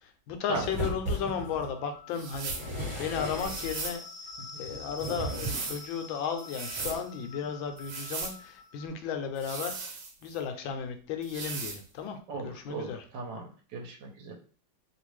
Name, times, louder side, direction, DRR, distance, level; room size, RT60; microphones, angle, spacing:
voice 1, 0.0-2.5 3.0-4.0 4.6-13.0, left 7 dB, 80° left, 6 dB, 1.3 m, -35 dB
sound 1, 0.5-1.7 2.3-3.8 4.6-5.8 6.7-7.0, right 1 dB, 30° right, 1.6 m, -36 dB
sound 2, 1.3-8.9, left 4 dB, 60° left, 0.9 m, -47 dB
sound 3, 2.1-2.7 3.4-4.0 5.0-5.8 6.4-7.0 7.8-8.4 9.4-10.4 11.2-11.8, right 4 dB, 85° right, 1.5 m, -38 dB
voice 2, 12.3-13.4 13.7-14.3, right 3 dB, 65° right, 0 dB, 1.4 m, -37 dB
3.3 x 2.4 x 3.1 m, 0.42 s
omnidirectional pair, 2.1 m